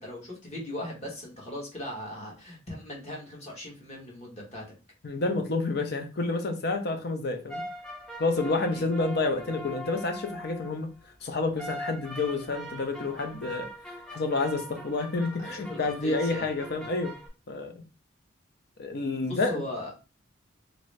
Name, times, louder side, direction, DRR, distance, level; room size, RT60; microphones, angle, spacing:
voice 1, 0.0-4.6 8.7-8.8 15.4-16.5 19.2-19.9, left 1 dB, 35° left, -2 dB, 1.3 m, -39 dB
voice 2, 5.0-7.6 8.2-10.9 11.2-13.7 14.1-17.1 17.5-17.8 18.8-19.6, left 3 dB, 60° left, 6 dB, 0.6 m, -29 dB
sound 1, 7.5-10.8 11.6-17.3, equal, 5° left, 0.7 m, -41 dB
2.9 x 2.6 x 3.2 m, 0.32 s
head